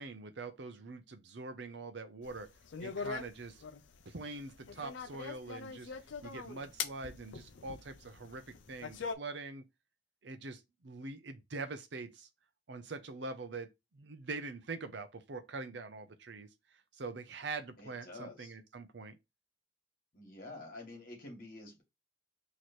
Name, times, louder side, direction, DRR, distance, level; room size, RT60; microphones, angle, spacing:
voice 1, 0.0-2.5 2.8-3.6 4.1-5.9 6.2-9.6 10.2-12.3 12.7-16.5 17.0-19.2, right 3 dB, 65° right, 0.6 m, -44 dB
sound 1, 2.2-9.2, left 5 dB, 75° left, 0.5 m, -43 dB
voice 2, 17.8-18.6 20.1-21.8, left 2 dB, 50° left, 1.4 m, -48 dB
3.1 x 3.0 x 4.1 m
head